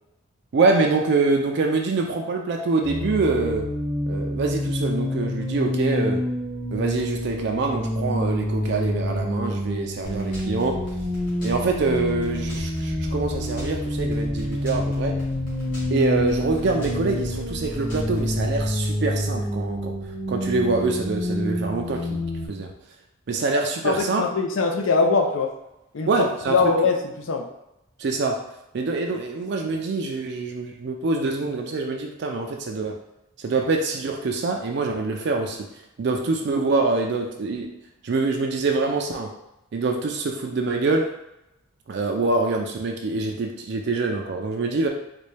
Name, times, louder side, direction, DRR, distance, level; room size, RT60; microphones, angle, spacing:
voice 1, 0.5-3.7 4.1-6.2 6.7-10.8 11.4-15.1 15.9-19.9 20.3-22.2 22.5-22.7 23.3-24.3 26.1-26.7 28.0-28.4 28.7-33.0 33.4-35.7 36.0-37.7 38.0-39.3 39.7-41.1 41.9-44.9, right 3 dB, 55° right, 2 dB, 0.4 m, -25 dB
sound 1, 2.8-22.5, left 1 dB, ahead, 0.6 m, -28 dB
sound 2, 10.0-18.7, left 1 dB, 40° left, 1.4 m, -37 dB
voice 2, 23.8-25.5 25.9-26.1 26.5-27.4, left 4 dB, 75° left, 4 dB, 0.5 m, -22 dB
4.0 x 2.2 x 3.2 m, 0.88 s
head